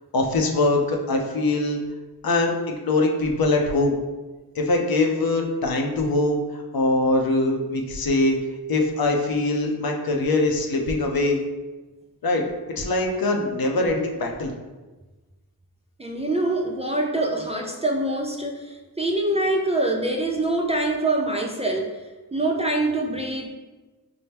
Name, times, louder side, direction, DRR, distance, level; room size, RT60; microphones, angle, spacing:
voice 1, 0.1-1.8 2.2-4.0 4.5-8.4 8.7-11.4 12.2-12.4 12.8-14.5, left 2 dB, 65° left, 1 dB, 0.6 m, -22 dB
voice 2, 16.0-22.0 22.3-23.5, right 2 dB, 15° right, 1 dB, 0.4 m, -24 dB
4.3 x 2.0 x 3.4 m, 1.2 s
cardioid pair, 55°, 39 cm